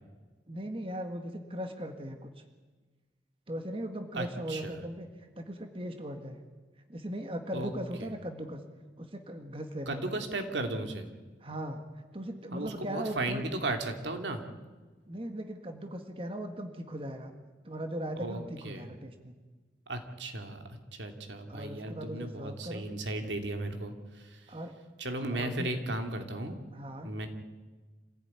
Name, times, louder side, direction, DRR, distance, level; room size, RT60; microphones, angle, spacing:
voice 1, 0.5-2.3 3.5-5.1 5.4-6.4 6.9-8.6 9.0-10.2 11.4-11.9 12.1-13.4 15.1-17.3 17.6-19.4 21.5-22.9 24.5-24.8 25.3-25.7 26.7-27.1, right 1 dB, 30° right, 5 dB, 1.8 m, -38 dB
voice 2, 4.1-4.7 7.5-7.7 9.9-11.1 12.5-14.4 18.2-18.9 19.9-24.5 25.0-26.6 27.0-27.3, right 2 dB, 80° right, 5 dB, 2.8 m, -35 dB
26.5 x 16.0 x 9.7 m, 1.3 s
head